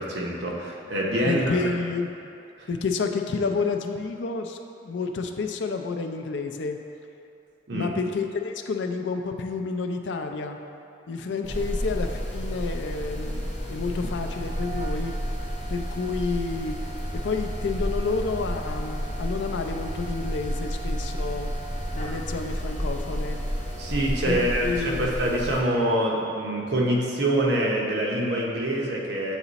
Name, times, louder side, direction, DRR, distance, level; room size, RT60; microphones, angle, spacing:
voice 1, 0.0-1.4 2.6-2.7 7.7-7.9 23.8-29.4, right 1 dB, 65° right, -2 dB, 0.8 m, -25 dB
voice 2, 1.3-2.1 2.7-6.8 7.7-10.6 11.1-15.1 15.7-16.8 17.1-21.5 21.9-23.4 24.2-25.1, left 4 dB, 70° left, 5 dB, 0.4 m, -30 dB
sound 1, 11.4-25.6, equal, 40° left, 0.9 m, -31 dB
8.0 x 3.0 x 4.0 m, 2.7 s
head